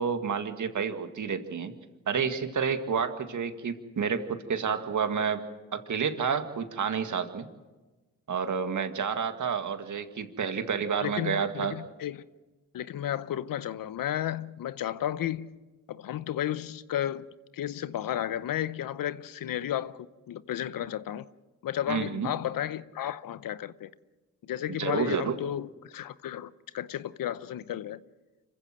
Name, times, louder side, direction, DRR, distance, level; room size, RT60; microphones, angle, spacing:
voice 1, 0.0-1.7 2.1-5.4 5.7-7.5 8.3-11.7 21.9-22.3 24.7-25.4, right 6 dB, 55° right, 2.0 m, -30 dB
voice 2, 11.0-12.2 12.7-15.5 15.9-17.2 17.5-21.3 21.6-23.9 24.4-28.0, left 11 dB, 70° left, 0.8 m, -33 dB
26.0 x 15.0 x 7.7 m
supercardioid pair, 55°, 35 cm